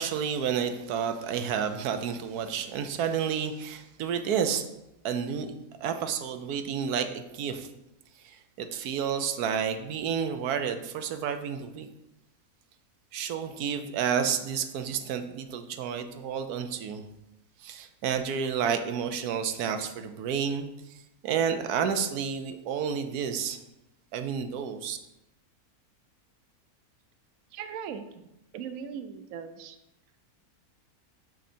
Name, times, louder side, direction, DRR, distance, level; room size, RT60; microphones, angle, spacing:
voice 1, 0.0-4.7 5.0-5.5 5.8-7.7 8.2-11.9 13.1-17.1 17.6-21.0 21.2-23.6 24.1-25.0, right 7 dB, 85° right, 8 dB, 1.2 m, -30 dB
voice 2, 27.5-29.8, right 7 dB, 70° right, 9 dB, 1.0 m, -39 dB
6.5 x 6.1 x 4.3 m, 0.88 s
omnidirectional pair, 1.6 m